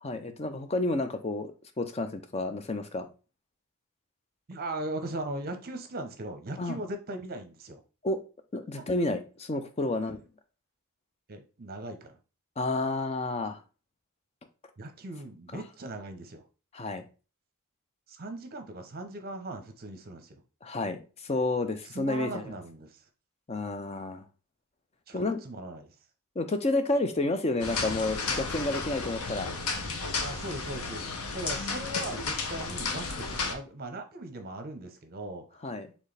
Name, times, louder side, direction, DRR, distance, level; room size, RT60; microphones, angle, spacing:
voice 1, 0.0-3.1 6.6-6.8 8.0-8.2 8.5-10.2 12.6-13.6 15.5-15.6 16.7-17.0 20.6-22.6 23.5-24.2 25.1-25.4 26.4-29.5 35.6-35.9, left 2 dB, 30° left, 0.5 m, -30 dB
voice 2, 4.5-7.8 8.7-8.8 9.9-10.2 11.3-12.2 14.8-16.4 18.1-20.4 21.9-23.0 25.1-25.9 30.2-31.1 31.3-35.4, right 1 dB, 45° right, 0.8 m, -39 dB
sound 1, 27.6-33.5, left 4 dB, 80° left, 0.8 m, -33 dB
4.5 x 3.5 x 3.3 m
head